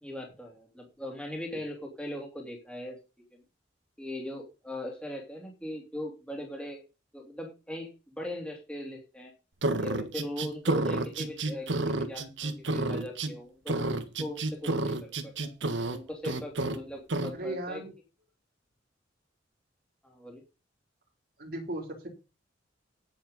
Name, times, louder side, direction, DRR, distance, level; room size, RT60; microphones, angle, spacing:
voice 1, 0.0-3.0 3.3-3.4 4.0-6.8 7.1-9.3 9.8-15.5 15.9-17.8 20.0-20.4, left 1 dB, 5° left, 0 dB, 3.0 m, -40 dB
sound 1, 9.6-13.3 13.7-16.0 16.2-16.8 17.1-17.3, right 2 dB, 80° right, 1.6 m, -30 dB
voice 2, 17.3-17.9 21.4-22.1, right 1 dB, 55° right, 0 dB, 3.1 m, -36 dB
10.5 x 7.8 x 5.3 m, 0.29 s
head